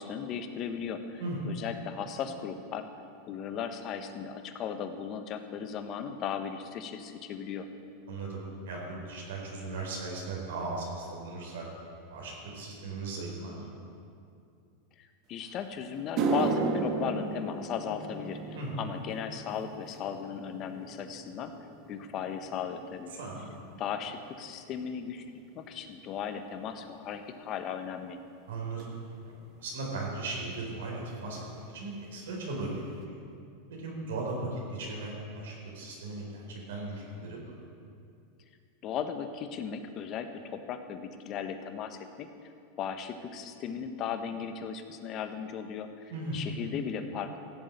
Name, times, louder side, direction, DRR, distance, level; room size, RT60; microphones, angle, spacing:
voice 1, 0.0-2.9 3.3-7.7 15.0-18.4 18.8-21.5 21.9-23.1 23.8-25.2 25.5-28.2 38.8-42.3 42.8-47.4, left 7 dB, 40° left, 7 dB, 1.3 m, -36 dB
voice 2, 8.1-11.6 12.1-13.7 18.5-18.7 23.1-23.4 28.5-28.9 29.3-32.9 33.7-37.5 46.1-46.4, right 2 dB, 80° right, -2 dB, 4.4 m, -37 dB
sound 1, 15.4-15.5 16.0-24.5 24.8-25.2 25.9-26.0 28.8-28.9 30.5-30.6 30.8-31.1 31.3-31.9 32.3-32.4 32.9-33.0, right 3 dB, 45° right, 1.9 m, -35 dB
15.5 x 7.8 x 8.5 m, 2.4 s
hypercardioid pair, 115°, 0 cm